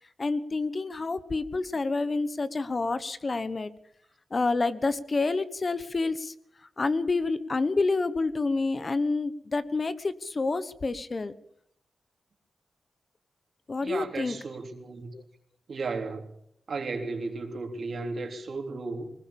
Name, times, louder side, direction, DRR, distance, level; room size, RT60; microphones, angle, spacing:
voice 1, 0.2-3.7 4.3-6.3 6.8-11.3 13.7-14.4 15.1-15.2, left 3 dB, 40° left, 1.2 m, -28 dB
voice 2, 13.8-15.1 15.7-16.3 16.7-19.1, right 3 dB, 65° right, 3.4 m, -34 dB
20.5 x 20.0 x 7.2 m
cardioid pair, 75°, 0 cm